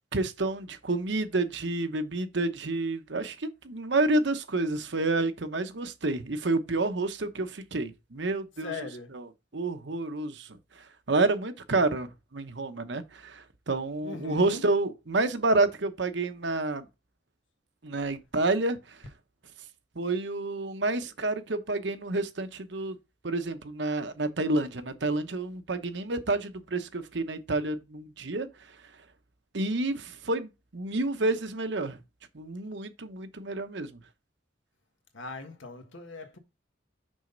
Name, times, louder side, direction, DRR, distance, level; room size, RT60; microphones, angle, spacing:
voice 1, 0.1-8.7 9.1-9.2 9.5-10.5 11.1-16.9 17.8-18.8 20.0-23.0 23.2-28.5 29.5-32.0 32.3-33.9, right 2 dB, 65° right, 0.9 m, -29 dB
voice 2, 8.6-9.2 14.0-14.6 35.1-36.4, left 3 dB, 80° left, 1.6 m, -39 dB
6.4 x 5.5 x 3.8 m
head